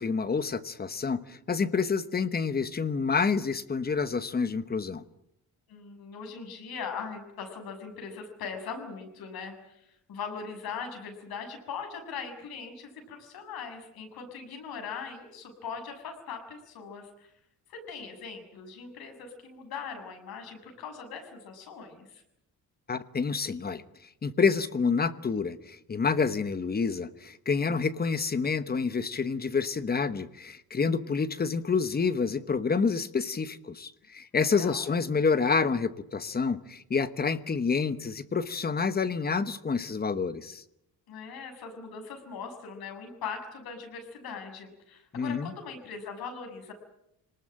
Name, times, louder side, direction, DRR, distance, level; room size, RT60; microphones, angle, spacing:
voice 1, 0.0-5.0 22.9-23.8 24.2-40.6 45.1-45.5, left 5 dB, 25° left, 12 dB, 1.1 m, -28 dB
voice 2, 5.7-17.3 17.7-22.2 34.4-35.0 41.1-46.7, left 5 dB, 80° left, 5 dB, 6.8 m, -40 dB
26.5 x 19.5 x 8.9 m, 0.80 s
cardioid pair, 160°, 36 cm